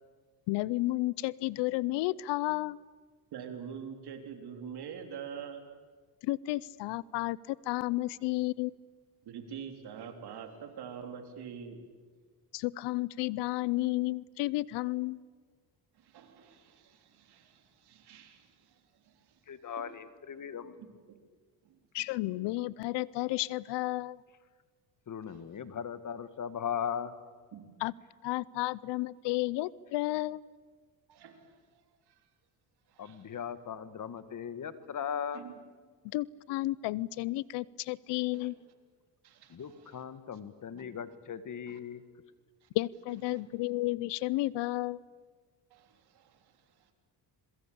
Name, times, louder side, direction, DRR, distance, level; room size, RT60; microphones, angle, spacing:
voice 1, 0.5-2.8 6.2-8.7 12.5-15.2 21.9-24.2 27.8-27.9 28.2-30.4 36.1-38.6 42.7-45.0, left 18 dB, 85° left, 23 dB, 0.7 m, -32 dB
voice 2, 3.3-5.7 9.2-11.8 16.0-19.3 19.7-20.0 20.8-21.2 21.7-21.8 25.3-25.4 27.5-27.8 31.1-32.1 32.9-33.3 35.3-35.6 38.3-38.5 39.2-40.0 40.7-40.9 41.7-41.8 42.6-42.7 43.3-43.4 45.7-46.5, right 7 dB, 65° right, 5 dB, 3.5 m, -46 dB
voice 3, 19.5-20.9 25.1-27.1 33.0-35.4 39.5-42.0, left 8 dB, 45° left, 13 dB, 1.8 m, -38 dB
27.5 x 22.0 x 8.6 m, 1.5 s
cardioid pair, 95°, 41 cm